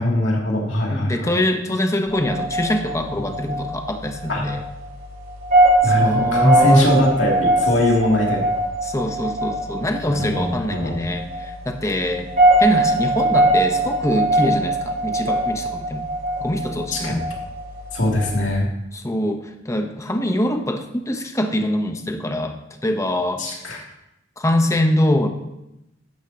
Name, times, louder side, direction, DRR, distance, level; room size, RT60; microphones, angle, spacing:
voice 1, 0.0-1.3 4.3-4.4 5.8-8.4 10.1-11.0 16.9-17.2 17.9-18.7 23.4-23.8, left 1 dB, 80° left, -2 dB, 2.7 m, -21 dB
voice 2, 0.9-4.6 5.8-7.0 8.8-12.3 12.6-16.1 16.4-17.2 18.9-23.5 24.4-25.3, left 1 dB, 15° left, 5 dB, 0.9 m, -24 dB
sound 1, 2.1-18.5, right 1 dB, 50° right, 3.9 m, -22 dB
12.0 x 10.0 x 2.9 m, 0.87 s
head